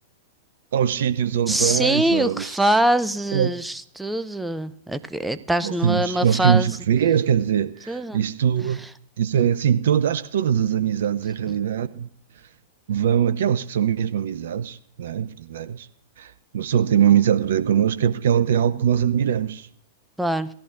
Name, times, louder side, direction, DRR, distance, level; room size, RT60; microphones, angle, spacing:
voice 1, 0.7-2.5 3.3-3.5 5.6-8.8 9.2-12.1 12.9-15.9 16.2-19.7, right 9 dB, 60° right, 0.4 m, -22 dB
voice 2, 1.5-6.8 7.9-8.2 8.7-8.9 11.5-11.6 20.2-20.5, right 1 dB, 5° right, 0.5 m, -23 dB
17.0 x 14.0 x 2.4 m
figure-of-eight pair, 100°, 0 cm